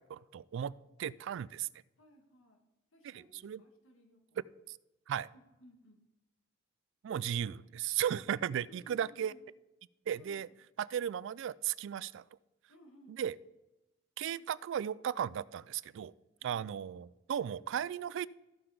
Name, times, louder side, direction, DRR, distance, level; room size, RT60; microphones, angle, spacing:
voice 1, 0.1-0.7 1.0-1.7 3.0-3.6 4.7-4.8 5.1-5.3 7.0-9.3 10.1-10.5 10.8-12.2 13.2-13.3 14.2-16.1 16.4-18.3, right 9 dB, 65° right, 20 dB, 0.3 m, -35 dB
voice 2, 2.0-2.6 2.9-4.5 5.3-6.0 8.4-9.4 10.1-10.5 12.7-13.2 16.4-16.7, right 1 dB, 85° left, 3 dB, 1.8 m, -60 dB
13.5 x 5.9 x 5.0 m, 1.0 s
head